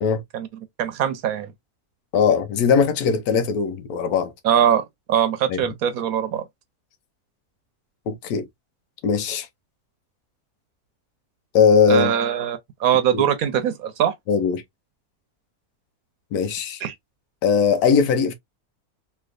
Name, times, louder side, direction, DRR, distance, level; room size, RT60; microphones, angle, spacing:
voice 1, 0.8-1.5 4.4-6.4 11.9-14.1 16.8-16.9, right 9 dB, 75° right, 1.1 m, -22 dB
voice 2, 2.1-4.3 5.5-5.6 8.1-8.5 9.0-9.5 11.5-12.1 13.1-13.2 14.3-14.6 16.3-16.8 17.4-18.3, left 6 dB, 80° left, 1.2 m, -19 dB
3.2 x 2.9 x 2.5 m
omnidirectional pair, 1.6 m